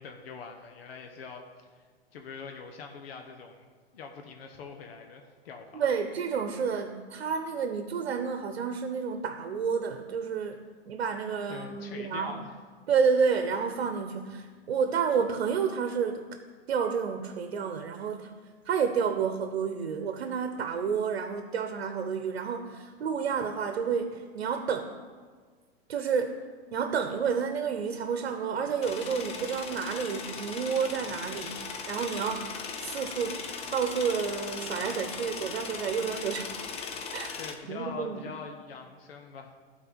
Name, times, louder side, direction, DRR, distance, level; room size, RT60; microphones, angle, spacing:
voice 1, 0.0-1.8 2.1-3.7 3.9-5.8 11.5-12.6 37.0-39.6, left 5 dB, 70° left, 4 dB, 1.2 m, -43 dB
voice 2, 5.7-10.6 10.9-12.4 12.9-16.2 16.7-18.3 18.7-24.9 25.9-26.4 26.7-32.5 32.8-33.4 33.7-36.5 37.1-37.3 37.7-38.3, right 6 dB, 80° right, 7 dB, 0.9 m, -30 dB
sound 1, 28.8-37.5, left 5 dB, 20° left, 0.7 m, -38 dB
12.5 x 4.5 x 6.1 m, 1.6 s
hypercardioid pair, 130°, 31 cm